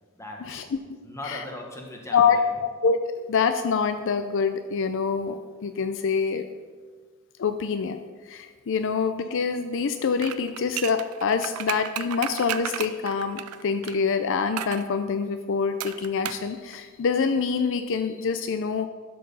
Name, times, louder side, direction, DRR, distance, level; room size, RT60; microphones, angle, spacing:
voice 1, 0.1-0.7 1.0-2.6, left 1 dB, 15° left, 0 dB, 1.4 m, -39 dB
voice 2, 2.1-3.0 3.2-6.5 7.4-18.9, left 5 dB, 60° left, 9 dB, 0.5 m, -25 dB
sound 1, 10.2-14.0 14.6-14.9 15.8-16.5 16.7-16.8, right 10 dB, 85° right, 0.5 m, -33 dB
12.5 x 4.7 x 5.4 m, 1.5 s
head